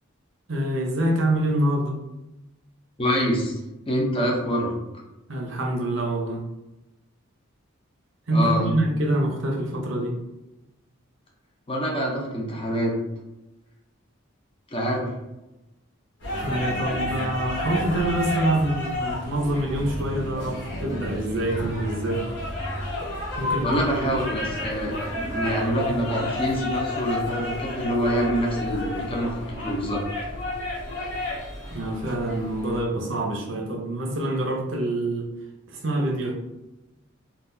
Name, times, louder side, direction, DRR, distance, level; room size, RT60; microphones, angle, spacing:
voice 1, 0.5-2.0 5.3-6.4 8.3-10.2 16.4-22.2 23.4-24.2 31.7-35.3 35.7-36.3, right 1 dB, 65° right, 1 dB, 0.6 m, -26 dB
voice 2, 3.0-3.5 3.9-4.7 8.3-8.8 11.7-12.9 14.7-15.1 23.6-30.0, equal, 25° left, -1 dB, 0.6 m, -26 dB
sound 1, 16.2-32.8, left 1 dB, 60° left, 0.9 m, -31 dB
3.8 x 2.3 x 2.6 m, 0.94 s
head